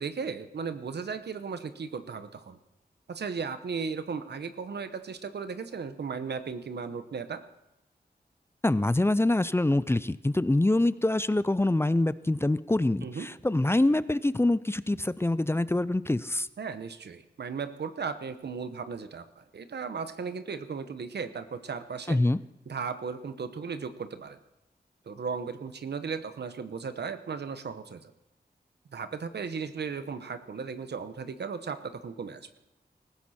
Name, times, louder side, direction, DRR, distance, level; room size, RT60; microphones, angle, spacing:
voice 1, 0.0-2.6 3.1-7.4 13.0-13.3 16.6-22.2 22.7-24.4 25.1-28.1 28.9-32.5, right 5 dB, 85° right, 10 dB, 1.0 m, -36 dB
voice 2, 8.6-16.5 22.1-22.4, left 2 dB, 15° left, 16 dB, 0.5 m, -25 dB
19.0 x 15.5 x 4.3 m, 0.93 s
wide cardioid pair, 70°, 17 cm